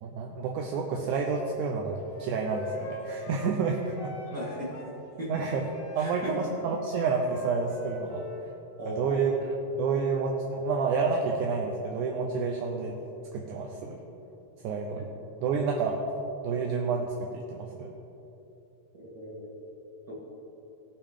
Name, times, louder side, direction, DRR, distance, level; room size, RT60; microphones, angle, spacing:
voice 1, 0.0-4.2 5.3-5.6 5.9-8.3 8.9-13.0 13.3-14.1 14.6-15.1 15.4-16.0 16.4-17.9, right 4 dB, 75° right, 1 dB, 2.0 m, -29 dB
Wind instrument woodwind instrument, 2.1-4.9 5.3-8.4, left 1 dB, 85° left, 0.9 m, -44 dB
voice 2, 4.3-4.7 5.2-5.3 6.0-6.4 8.8-9.2 19.0-19.5 20.0-20.1, equal, 40° right, -7 dB, 1.6 m, -37 dB
18.0 x 7.0 x 3.6 m, 3.0 s
omnidirectional pair, 3.8 m